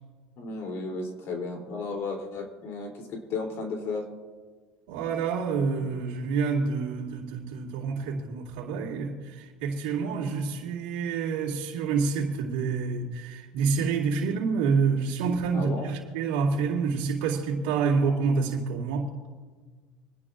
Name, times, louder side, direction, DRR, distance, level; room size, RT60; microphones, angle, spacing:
voice 1, 0.4-4.0 15.5-16.0, left 3 dB, 55° left, 3.0 m, -34 dB
voice 2, 4.9-19.1, right 5 dB, 85° right, 2.3 m, -28 dB
27.5 x 11.0 x 2.5 m
supercardioid pair, 105°, 5 cm